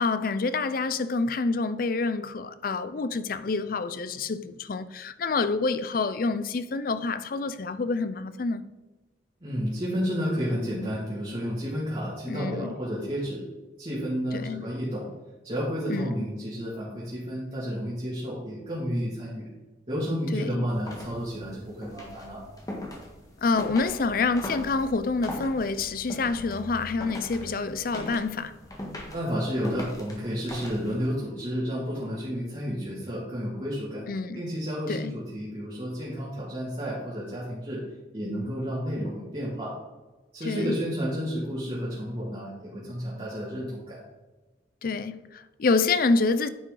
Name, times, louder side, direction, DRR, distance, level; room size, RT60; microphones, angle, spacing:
voice 1, 0.0-8.6 12.3-12.7 14.3-14.7 15.9-16.3 20.3-20.6 23.4-28.5 34.1-34.4 34.9-35.2 40.4-40.7 44.8-46.5, left 3 dB, 50° left, 0.5 m, -27 dB
voice 2, 9.4-13.4 13.8-15.1 15.4-19.5 19.9-22.4 29.1-34.1 34.3-37.8 38.1-39.7 40.3-44.0, equal, 30° right, 2.2 m, -31 dB
sound 1, 20.6-31.2, left 1 dB, 20° left, 1.5 m, -40 dB
9.8 x 5.5 x 3.9 m
head